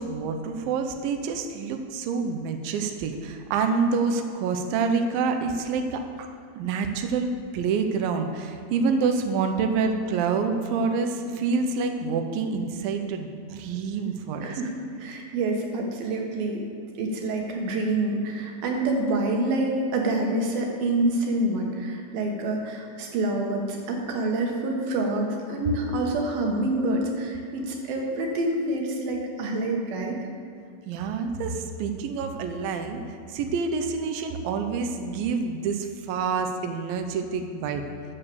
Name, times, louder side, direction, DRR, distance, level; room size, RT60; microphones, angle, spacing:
voice 1, 0.0-6.0 6.6-7.3 7.5-14.6 30.9-37.8, right 5 dB, 90° right, 6 dB, 2.0 m, -27 dB
voice 2, 14.4-14.7 15.0-16.6 17.0-30.2, right 2 dB, 65° right, 1 dB, 2.8 m, -27 dB
12.5 x 6.9 x 7.0 m, 2.4 s
omnidirectional pair, 5.2 m